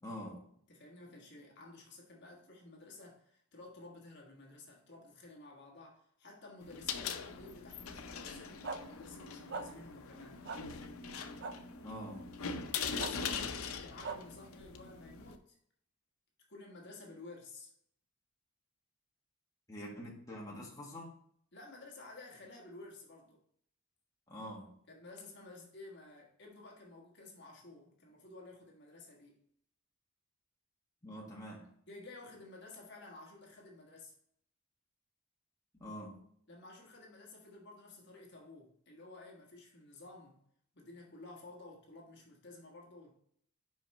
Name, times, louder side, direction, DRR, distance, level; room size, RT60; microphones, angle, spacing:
voice 1, 0.0-0.4 11.8-12.3 19.7-21.1 24.3-24.7 31.0-31.7 35.8-36.2, equal, 15° left, 1.4 m, -45 dB
voice 2, 0.7-10.4 12.7-15.6 16.5-17.7 21.5-23.4 24.9-29.4 31.9-34.1 36.5-40.4 40.7-43.1, left 2 dB, 55° left, 1.4 m, -53 dB
sound 1, 6.6-15.4, left 6 dB, 80° left, 0.6 m, -42 dB
sound 2, 8.6-8.8 9.5-9.6 10.4-10.6 11.4-11.5 13.0-13.1 14.0-14.2, right 4 dB, 50° right, 0.5 m, -39 dB
5.6 x 5.3 x 4.2 m
head